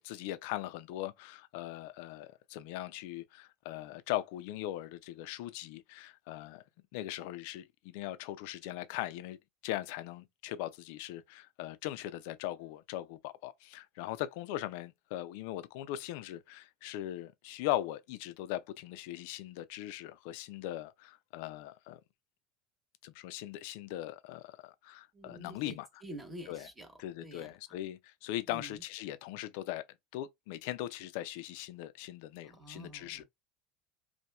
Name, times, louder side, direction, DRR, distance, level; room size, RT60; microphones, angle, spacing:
voice 1, 0.0-6.6 6.9-9.4 9.6-22.0 23.0-25.9 26.5-26.7 27.0-29.8 30.1-33.2, left 14 dB, 65° left, 0.4 m, -40 dB
voice 2, 25.1-25.8 26.0-26.9 27.2-27.5 28.5-28.8 32.4-33.2, right 1 dB, 15° right, 1.0 m, -47 dB
2.8 x 2.2 x 2.3 m
hypercardioid pair, 75°, 0 cm